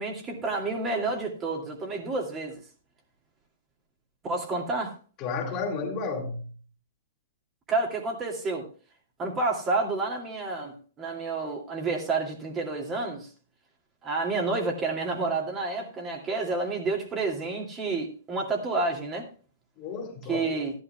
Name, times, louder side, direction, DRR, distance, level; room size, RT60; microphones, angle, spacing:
voice 1, 0.0-2.6 4.2-4.9 7.7-8.7 9.2-13.3 14.0-19.3 20.3-20.7, right 3 dB, 25° right, 2.6 m, -29 dB
voice 2, 5.2-6.5 19.8-20.5, left 4 dB, 35° left, 2.6 m, -32 dB
14.5 x 11.0 x 2.4 m
hypercardioid pair, 115°, 0 cm